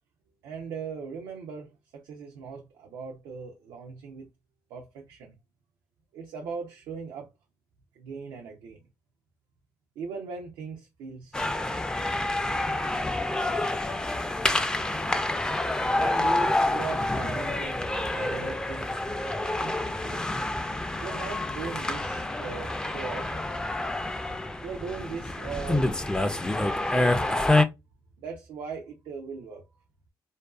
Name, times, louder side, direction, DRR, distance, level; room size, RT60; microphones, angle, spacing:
voice 1, 0.4-4.3 4.7-5.4 6.1-7.3 7.9-8.8 10.0-11.8 15.9-18.9 19.5-20.2 21.0-23.3 24.6-26.0 26.8-27.5 28.2-29.6, right 5 dB, 85° right, 0.4 m, -39 dB
sound 1, 11.3-27.6, left 2 dB, 10° left, 0.3 m, -28 dB
2.5 x 2.2 x 2.3 m
cardioid pair, 75°, 8 cm